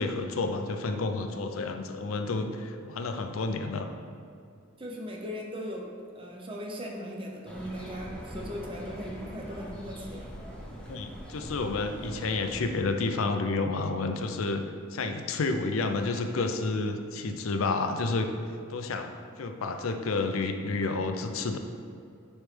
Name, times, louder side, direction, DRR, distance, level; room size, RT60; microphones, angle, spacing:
voice 1, 0.0-3.9 10.9-14.6 14.9-18.3 18.7-19.1 19.4-21.6, left 3 dB, 80° left, 6 dB, 0.5 m, -30 dB
voice 2, 4.8-10.4, equal, 25° right, -1 dB, 0.7 m, -38 dB
sound 1, 7.5-12.9, equal, 5° left, 0.7 m, -42 dB
9.6 x 3.2 x 3.3 m, 2.4 s
head